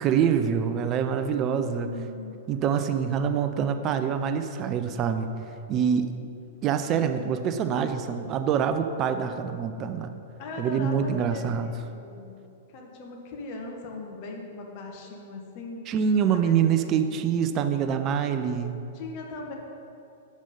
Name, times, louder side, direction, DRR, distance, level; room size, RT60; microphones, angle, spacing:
voice 1, 0.0-1.9 2.5-5.3 5.7-6.1 6.6-10.1 10.6-11.7 15.9-18.8, right 7 dB, 30° right, 8 dB, 0.4 m, -25 dB
voice 2, 1.6-2.4 10.4-12.4 12.7-15.8 16.4-16.6 16.9-17.4 18.9-19.5, left 2 dB, 40° left, 0 dB, 1.0 m, -39 dB
5.3 x 5.2 x 5.2 m, 2.7 s
figure-of-eight pair, 100°, 0 cm